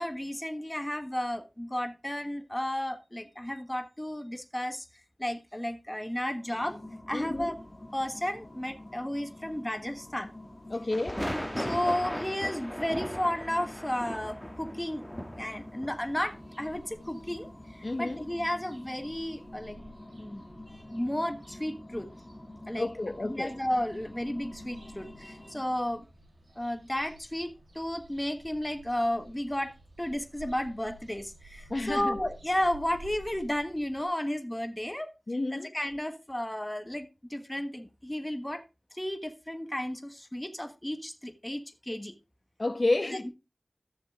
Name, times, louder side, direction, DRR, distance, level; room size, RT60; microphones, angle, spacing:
voice 1, 0.0-4.8 5.2-6.8 7.1-7.6 7.9-10.3 11.6-15.0 15.4-19.8 20.2-22.1 22.7-22.9 23.2-26.0 26.5-35.1 35.5-38.6 38.9-42.1 43.1-43.3, left 1 dB, 15° left, 1.4 m, -33 dB
sound 1, 6.3-26.0, left 1 dB, 35° left, 2.0 m, -48 dB
voice 2, 7.1-7.5 10.7-11.3 17.8-18.2 22.8-23.5 31.7-32.2 35.3-35.7 42.6-43.3, left 2 dB, 60° left, 1.0 m, -30 dB
sound 2, 7.2-7.8 10.9-18.6 19.0-19.2, equal, ahead, 2.0 m, -38 dB
sound 3, 15.9-34.1, right 2 dB, 85° right, 4.9 m, -53 dB
13.5 x 6.9 x 3.6 m
wide cardioid pair, 40°, 0 cm